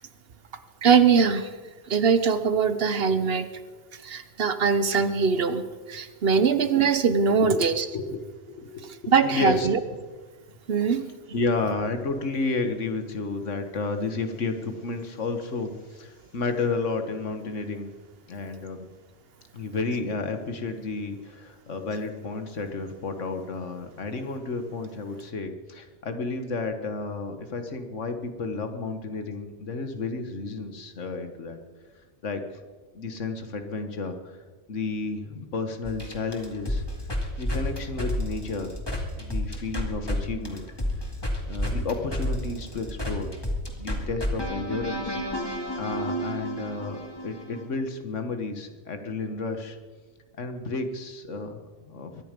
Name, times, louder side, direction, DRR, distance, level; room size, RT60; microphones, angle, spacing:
voice 1, 0.8-1.6 1.9-3.5 4.0-5.6 5.9-7.9 9.1-9.8 10.7-11.0, right 6 dB, 55° right, 11 dB, 1.0 m, -22 dB
voice 2, 8.5-9.7 11.3-17.9 18.3-18.9 19.5-31.6 32.2-32.6 32.9-34.4 34.7-36.8 37.4-38.9 39.1-40.6 41.5-43.3 43.8-45.2 45.7-47.0 47.2-49.8 50.4-52.2, left 3 dB, 90° left, 7 dB, 1.7 m, -31 dB
sound 1, 35.8-40.2 40.4-47.7, equal, 20° left, 2.2 m, -30 dB
23.0 x 11.0 x 5.2 m, 1.4 s
omnidirectional pair, 1.2 m